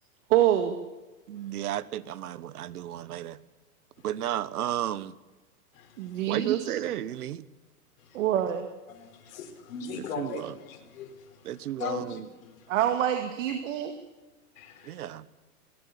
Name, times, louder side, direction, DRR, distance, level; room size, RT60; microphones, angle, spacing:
voice 1, 0.3-0.8 6.0-6.8 8.1-8.7 12.7-13.9, right 11 dB, 55° right, 6 dB, 2.1 m, -25 dB
voice 2, 1.3-3.4 4.0-5.1 6.3-7.4 9.9-10.6 11.4-12.3 14.8-15.2, right 12 dB, 75° right, 18 dB, 1.3 m, -33 dB
voice 3, 8.9-11.1 11.8-12.6 13.5-13.6 14.6-15.0, left 6 dB, 60° left, 2 dB, 4.5 m, -38 dB
21.5 x 18.0 x 8.5 m, 1.1 s
hypercardioid pair, 150°, 46 cm